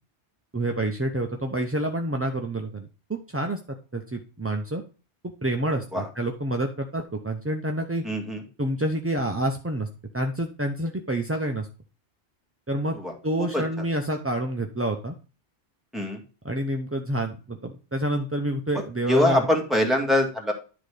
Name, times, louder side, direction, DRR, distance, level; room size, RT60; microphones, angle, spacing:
voice 1, 0.5-3.6 3.9-4.8 5.4-8.0 8.6-9.9 10.1-11.7 12.7-13.0 13.2-15.1 16.4-19.5, right 1 dB, 20° right, 3 dB, 0.4 m, -28 dB
voice 2, 8.0-8.4 12.9-13.1 13.4-13.6 15.9-16.2 18.7-18.8 19.1-20.5, left 1 dB, ahead, 0 dB, 1.9 m, -23 dB
10.5 x 4.0 x 4.9 m, 0.34 s
omnidirectional pair, 1.2 m